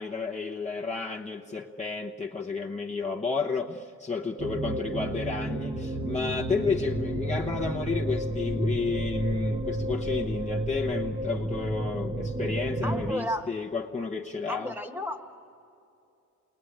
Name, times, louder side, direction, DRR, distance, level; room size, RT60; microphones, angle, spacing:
voice 1, 0.0-14.7, left 4 dB, 25° left, -2 dB, 1.0 m, -32 dB
sound 1, 4.4-13.1, right 1 dB, 20° right, 0.9 m, -31 dB
voice 2, 12.8-13.5 14.5-15.2, equal, 5° right, 4 dB, 1.4 m, -33 dB
28.5 x 21.0 x 8.8 m, 2.6 s
wide cardioid pair, 150°, 29 cm